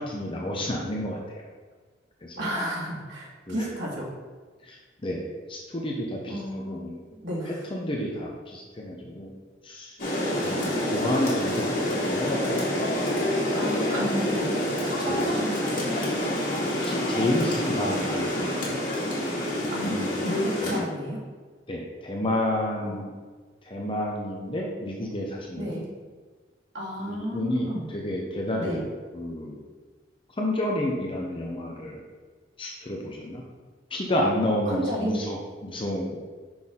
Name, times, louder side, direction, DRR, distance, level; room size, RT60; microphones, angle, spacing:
voice 1, 0.0-1.4 2.2-2.5 3.5-3.7 4.6-7.0 7.5-9.3 9.6-10.0 10.4-12.6 15.0-15.4 16.8-18.8 19.6-20.2 20.6-20.8 21.7-23.1 23.6-25.8 27.1-28.9 29.1-29.6 30.4-32.0 32.6-33.4 33.9-36.2, left 1 dB, 30° left, -1 dB, 0.8 m, -30 dB
voice 2, 2.4-4.1 6.3-6.8 7.2-7.6 13.5-16.0 18.0-18.1 19.7-21.2 22.8-22.9 25.6-25.9 26.7-27.9 28.6-28.8 34.7-35.2, equal, 90° right, -4 dB, 2.1 m, -32 dB
Rain, 10.0-20.8, left 1 dB, 50° left, 2.1 m, -27 dB
6.1 x 6.0 x 3.7 m, 1.5 s
head